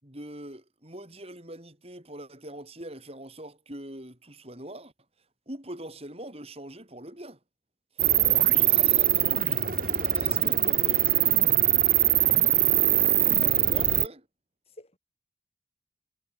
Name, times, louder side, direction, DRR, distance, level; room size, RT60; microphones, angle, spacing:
voice 1, 0.0-4.9 5.5-7.4 8.0-8.1 8.5-11.3 13.6-14.3, right 1 dB, 30° right, 6.9 m, -43 dB
sound 1, 8.0-14.1, right 13 dB, 50° right, 2.0 m, -22 dB
voice 2, 12.5-12.8 13.4-13.7 14.8-15.0, left 1 dB, 35° left, 7.2 m, -47 dB
head